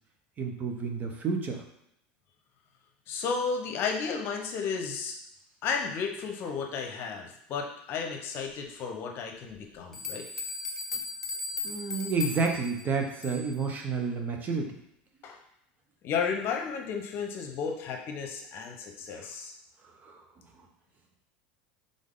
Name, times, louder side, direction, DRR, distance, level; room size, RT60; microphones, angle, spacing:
voice 1, 0.4-1.6 11.6-14.8 19.1-19.3 19.8-20.2, right 4 dB, 35° right, 3 dB, 0.9 m, -30 dB
voice 2, 3.1-5.2 5.6-10.3 15.2-15.4 16.0-19.5, left 5 dB, 50° left, 3 dB, 0.8 m, -33 dB
sound 1, 9.9-13.6, left 3 dB, 10° left, 1.1 m, -37 dB
3.8 x 3.6 x 3.8 m, 0.76 s
supercardioid pair, 100°, 5 cm